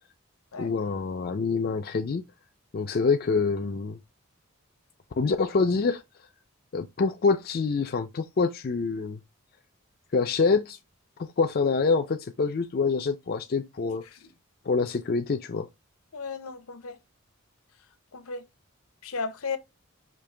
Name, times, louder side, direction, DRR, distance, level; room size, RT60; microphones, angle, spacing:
voice 1, 0.6-2.2 2.7-4.0 5.2-6.0 6.7-9.2 10.1-10.8 11.2-14.0 14.7-15.7, left 4 dB, 45° left, 0.4 m, -26 dB
voice 2, 16.1-17.0 18.1-18.4 19.0-19.6, left 4 dB, 75° left, 0.7 m, -34 dB
5.2 x 2.8 x 3.2 m
head